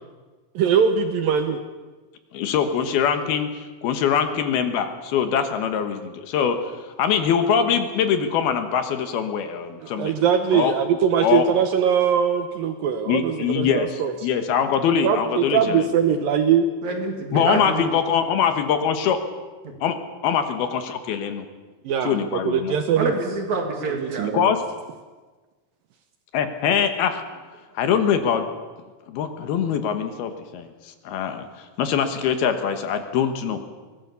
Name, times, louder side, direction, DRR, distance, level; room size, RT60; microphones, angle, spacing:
voice 1, 0.6-1.6 9.8-14.1 14.9-16.7 21.9-23.1 23.9-24.5, right 7 dB, 70° right, 7 dB, 2.4 m, -21 dB
voice 2, 2.3-3.5 3.8-6.6 7.0-10.1 10.5-10.7 11.2-11.4 13.1-15.9 17.3-19.2 19.8-19.9 20.2-21.5 22.0-22.7 24.3-24.6 26.3-27.2 27.8-28.5 29.1-30.7 31.0-31.5 31.8-33.6, left 8 dB, 70° left, 8 dB, 3.1 m, -23 dB
voice 3, 16.8-17.9 19.6-19.7 23.0-24.3, right 3 dB, 50° right, 3 dB, 3.3 m, -26 dB
23.0 x 18.5 x 7.0 m, 1.3 s
omnidirectional pair, 4.8 m